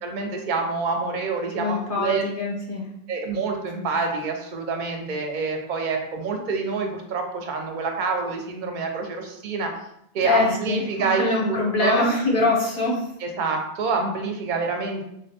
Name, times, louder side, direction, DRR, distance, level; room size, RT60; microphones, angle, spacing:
voice 1, 0.0-2.2 3.1-9.7 10.1-12.1 13.2-15.0, right 4 dB, 55° right, 3 dB, 0.6 m, -27 dB
voice 2, 1.6-2.9 10.2-13.1, left 3 dB, 60° left, -2 dB, 0.7 m, -23 dB
3.8 x 2.1 x 2.7 m, 0.76 s
omnidirectional pair, 1.1 m